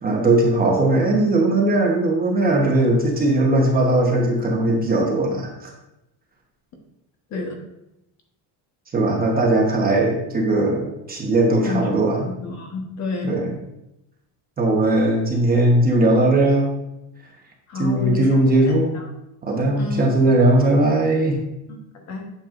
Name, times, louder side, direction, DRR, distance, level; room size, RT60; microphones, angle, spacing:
voice 1, 0.0-5.7 8.9-12.3 13.2-13.5 14.6-16.7 17.8-18.9 19.4-21.4, right 2 dB, 20° right, 0 dB, 1.1 m, -19 dB
voice 2, 12.2-13.3 17.7-18.4 18.7-19.1 19.8-20.1 21.7-21.8 22.1-22.2, left 3 dB, 40° left, 2 dB, 1.1 m, -29 dB
9.0 x 6.9 x 2.5 m, 0.87 s
cardioid pair, 175°, 42 cm